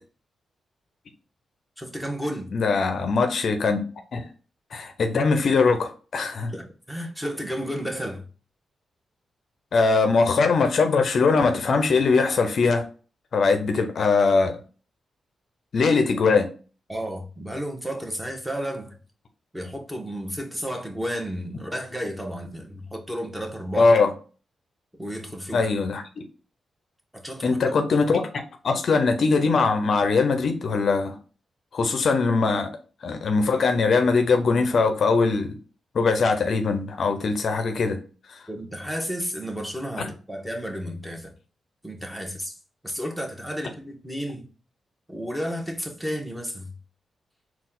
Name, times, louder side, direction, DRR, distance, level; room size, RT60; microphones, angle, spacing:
voice 1, 1.8-2.5 6.5-8.2 16.9-19.0 19.5-23.9 25.0-25.6 27.2-27.8 38.5-41.3 41.8-42.5 42.8-44.5 45.1-46.7, equal, 5° right, 1.2 m, -32 dB
voice 2, 2.5-3.8 4.1-4.3 4.7-6.5 9.7-12.8 13.3-14.6 15.7-16.5 23.8-24.1 25.5-26.2 27.4-28.3 28.6-31.2 31.7-32.7 33.0-35.5 35.9-38.0 38.3-38.4 40.0-40.1, left 4 dB, 65° left, 0.6 m, -21 dB
4.0 x 2.4 x 3.8 m
cardioid pair, 55°, 0 cm